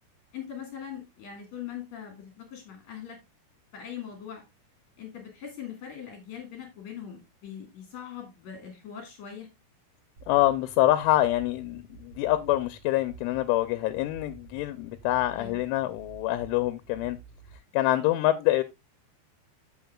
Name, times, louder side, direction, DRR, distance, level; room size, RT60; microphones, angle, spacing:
voice 1, 0.3-3.2 3.7-4.4 5.0-9.5 15.4-15.5, left 8 dB, 50° left, 2.5 m, -41 dB
sound 1, 10.2-17.6, right 4 dB, 35° right, 4.5 m, -50 dB
voice 2, 10.3-17.2 17.7-18.6, left 15 dB, 85° left, 3.0 m, -25 dB
15.0 x 5.6 x 2.3 m
omnidirectional pair, 5.5 m